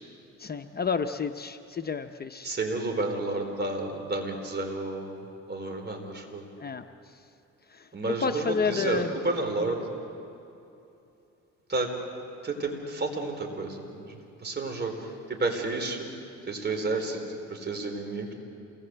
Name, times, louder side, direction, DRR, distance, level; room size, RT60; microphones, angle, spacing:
voice 1, 0.4-2.5 6.6-6.8 8.1-9.1, left 5 dB, 30° left, 7 dB, 0.9 m, -30 dB
voice 2, 2.4-6.4 7.9-9.8 11.7-11.9 12.4-14.9 15.3-16.1 16.5-17.2 17.5-18.3, right 2 dB, 35° right, 3 dB, 4.6 m, -31 dB
28.0 x 20.0 x 8.1 m, 2.8 s
cardioid pair, 90°, 30 cm